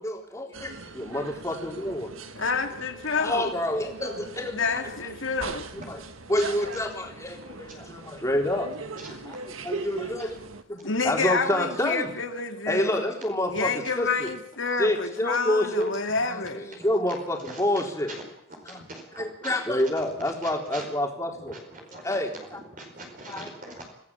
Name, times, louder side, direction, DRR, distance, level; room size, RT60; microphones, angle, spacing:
voice 1, 0.0-2.1 3.2-4.9 5.7-6.0 6.3-10.4 10.7-12.1 12.7-14.3 14.8-15.9 16.2-18.1 18.7-18.8 19.2-21.6 21.9-22.6 23.3-23.5, left 1 dB, 15° left, 1 dB, 3.8 m, -28 dB
sound 1, 0.5-10.6, right 3 dB, 85° right, 1.9 m, -40 dB
voice 2, 2.3-3.5 4.5-5.7 10.8-12.9 13.4-16.7, left 4 dB, 70° left, 6 dB, 2.6 m, -28 dB
voice 3, 9.0-9.4 17.4-17.6 18.1-18.2 18.7-19.5 20.4-20.9 21.5-22.2 22.7-23.9, right 2 dB, 40° right, 2 dB, 4.7 m, -42 dB
26.5 x 17.0 x 7.4 m, 0.81 s
head